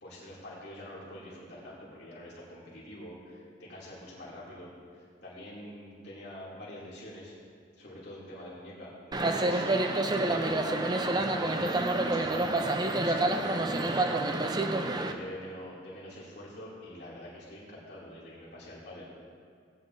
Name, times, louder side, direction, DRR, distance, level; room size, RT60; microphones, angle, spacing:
voice 1, 0.0-7.3 7.8-10.8 11.1-14.0 14.8-19.3, left 1 dB, 65° left, -7 dB, 2.7 m, -45 dB
sound 1, 9.1-15.1, right 2 dB, 25° right, 0.6 m, -28 dB
18.0 x 9.2 x 2.7 m, 2.1 s
head